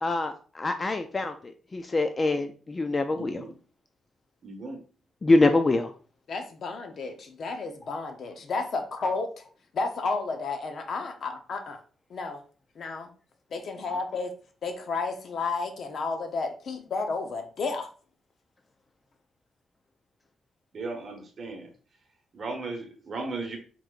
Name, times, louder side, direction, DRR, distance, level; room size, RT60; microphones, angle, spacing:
voice 1, 0.0-1.3 1.7-3.4 5.2-5.9, left 2 dB, 25° left, 8 dB, 0.3 m, -24 dB
voice 2, 3.1-3.5 4.4-4.8 20.7-21.7 22.3-23.6, right 3 dB, 45° right, 3 dB, 1.1 m, -36 dB
voice 3, 6.3-9.4 9.7-11.8 12.1-12.4 12.7-13.1 13.5-14.3 14.6-17.9, left 4 dB, 55° left, 5 dB, 0.7 m, -32 dB
4.5 x 3.8 x 2.4 m, 0.40 s
cardioid pair, 125°, 0 cm